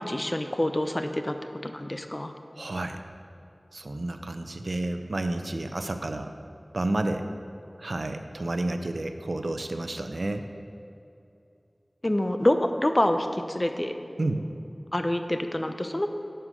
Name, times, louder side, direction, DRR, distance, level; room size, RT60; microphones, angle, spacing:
voice 1, 0.0-1.4 1.6-2.3 12.0-14.0 14.9-16.1, left 1 dB, 35° left, 7 dB, 0.6 m, -26 dB
voice 2, 2.5-3.0 3.7-6.3 6.7-7.3 7.8-10.5 14.2-14.4, right 2 dB, 75° right, 7 dB, 0.6 m, -30 dB
10.0 x 5.6 x 6.3 m, 2.7 s
wide cardioid pair, 45°, 0 cm